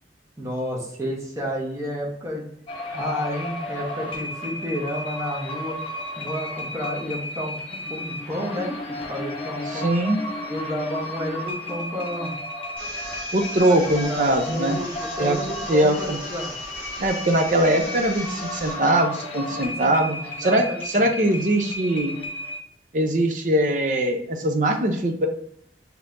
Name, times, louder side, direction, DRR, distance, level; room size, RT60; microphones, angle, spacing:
voice 1, 0.4-2.4 2.9-5.8 6.2-9.9 10.5-12.3 13.6-16.5 19.5-20.1 20.4-21.0, equal, 15° right, -2 dB, 1.0 m, -31 dB
sound 1, 2.7-22.6, left 1 dB, 30° left, 0.7 m, -34 dB
voice 2, 9.7-10.2 13.3-14.8 15.2-15.4 15.7-16.2 17.0-22.1 22.9-25.3, right 1 dB, 45° right, 5 dB, 0.6 m, -21 dB
sound 2, 12.8-18.8, left 1 dB, 10° left, 1.6 m, -38 dB
5.3 x 2.9 x 2.6 m, 0.68 s
head